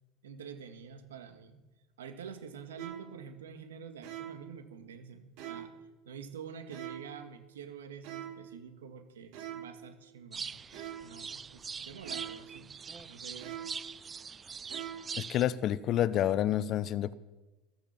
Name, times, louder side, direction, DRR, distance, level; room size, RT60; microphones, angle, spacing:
voice 1, 0.2-1.6 2.0-5.7 6.1-10.5 11.0-12.7 13.0-13.6, right 7 dB, 90° right, 2.1 m, -47 dB
sound 1, 2.8-3.2 4.0-4.5 5.4-5.8 6.7-7.2 8.0-8.5 9.3-9.8 10.7-11.2 12.0-12.5 13.4-13.9 14.7-15.2, right 10 dB, 65° right, 3.0 m, -43 dB
sound 2, 10.3-15.4, right 6 dB, 25° right, 0.5 m, -42 dB
voice 2, 15.2-17.1, left 11 dB, 45° left, 0.8 m, -29 dB
15.0 x 13.0 x 6.0 m
hypercardioid pair, 105°, 0 cm